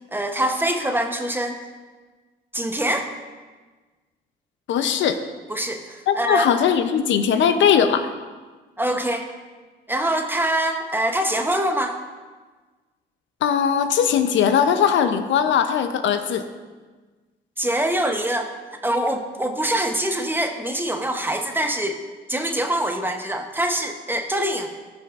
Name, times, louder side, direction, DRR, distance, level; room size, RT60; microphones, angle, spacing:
voice 1, 0.1-1.6 2.5-3.1 5.5-6.5 8.8-9.3 9.9-12.0 17.6-18.5 18.8-22.0 22.3-24.7, right 1 dB, 10° right, 5 dB, 0.8 m, -24 dB
voice 2, 4.7-5.2 6.1-8.1 13.4-16.5, left 8 dB, 70° left, 9 dB, 0.6 m, -19 dB
15.0 x 6.0 x 2.4 m, 1.3 s
cardioid pair, 90°, 20 cm